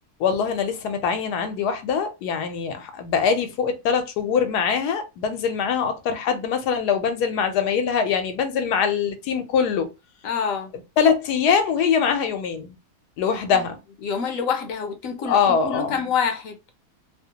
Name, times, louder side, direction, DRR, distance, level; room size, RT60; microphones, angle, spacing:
voice 1, 0.2-9.9 11.0-12.7 13.2-13.8 15.2-16.0, left 6 dB, 85° left, 1.2 m, -23 dB
voice 2, 10.2-10.7 14.0-16.6, left 6 dB, 65° left, 0.9 m, -26 dB
2.9 x 2.1 x 2.7 m
omnidirectional pair, 1.7 m